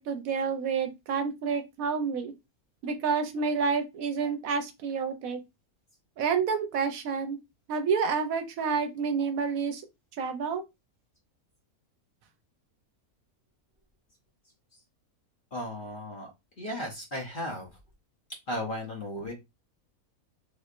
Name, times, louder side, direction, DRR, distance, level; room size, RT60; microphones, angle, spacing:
voice 1, 0.0-2.3 2.8-5.4 6.2-7.4 7.7-9.8 10.2-10.6, right 5 dB, 70° right, 1.0 m, -29 dB
voice 2, 15.5-16.3 16.6-17.7 18.5-19.3, left 1 dB, 40° left, 0.9 m, -35 dB
3.4 x 3.1 x 2.4 m
omnidirectional pair, 1.6 m